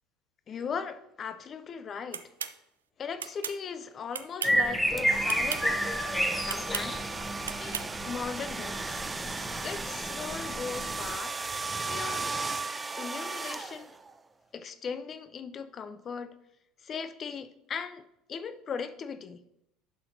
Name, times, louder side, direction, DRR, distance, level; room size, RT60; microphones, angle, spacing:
voice 1, 0.5-2.3 3.0-5.7 6.4-7.2 7.6-9.0 9.6-11.4 11.9-12.4 13.0-13.9 14.5-16.4 16.8-18.0 18.3-19.4, left 6 dB, 40° left, 0.4 m, -38 dB
sound 1, 2.1-2.5 3.2-3.6 4.1-4.6 5.2-5.6 6.5-6.9 7.4-7.9, right 7 dB, 85° right, 0.3 m, -35 dB
sound 2, 4.4-11.1, equal, 10° left, 1.0 m, -31 dB
sound 3, 5.0-14.1, right 3 dB, 20° right, 0.4 m, -36 dB
11.5 x 5.7 x 2.7 m
hypercardioid pair, 70°, 0 cm